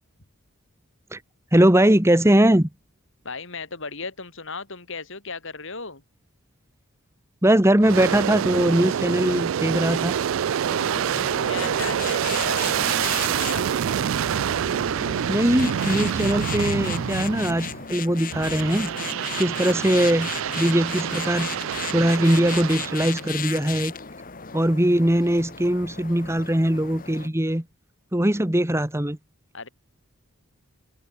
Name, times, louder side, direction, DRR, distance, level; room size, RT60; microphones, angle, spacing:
voice 1, 1.5-2.7 7.4-10.1 15.3-18.9 19.4-20.3 20.6-21.5 21.9-23.9 24.5-27.6 28.1-29.2, right 1 dB, 10° right, 1.4 m, -21 dB
voice 2, 3.2-6.0 11.2-13.9 29.5-29.7, left 4 dB, 60° left, 3.7 m, -36 dB
Aircraft, 7.8-17.8 18.3-23.3, right 9 dB, 60° right, 0.3 m, -26 dB
sound 1, 10.6-27.3, left 6 dB, 40° left, 1.6 m, -36 dB
open air
head